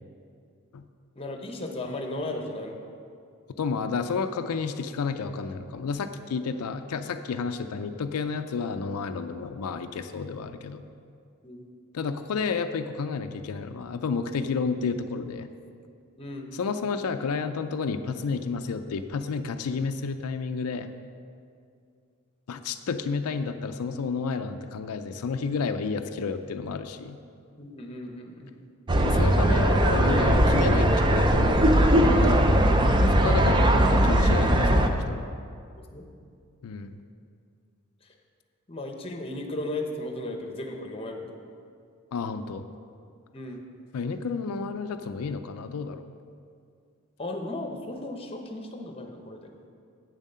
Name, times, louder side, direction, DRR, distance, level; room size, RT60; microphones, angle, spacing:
voice 1, 1.2-2.8 11.4-11.6 16.2-16.5 27.6-28.6 35.8-36.1 38.0-38.1 38.7-41.4 43.3-43.6 47.2-49.5, left 1 dB, 25° left, 3 dB, 0.8 m, -35 dB
voice 2, 3.6-10.8 11.9-15.5 16.5-20.9 22.5-27.2 29.0-35.3 36.6-37.0 42.1-42.6 43.9-46.0, left 5 dB, 90° left, 8 dB, 0.4 m, -31 dB
sound 1, 28.9-34.9, right 1 dB, 20° right, 0.4 m, -20 dB
8.3 x 7.3 x 5.5 m, 2.3 s
head